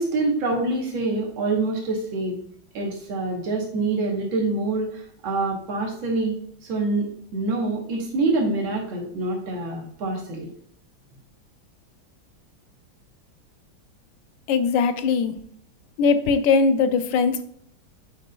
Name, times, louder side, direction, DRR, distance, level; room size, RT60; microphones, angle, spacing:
voice 1, 0.0-2.4 2.7-6.4 6.6-7.1 7.3-10.5, right 3 dB, 85° right, 0 dB, 2.0 m, -26 dB
voice 2, 14.5-15.3 16.0-17.4, left 5 dB, 75° left, 10 dB, 1.3 m, -20 dB
8.1 x 5.1 x 2.3 m, 0.66 s
omnidirectional pair, 2.1 m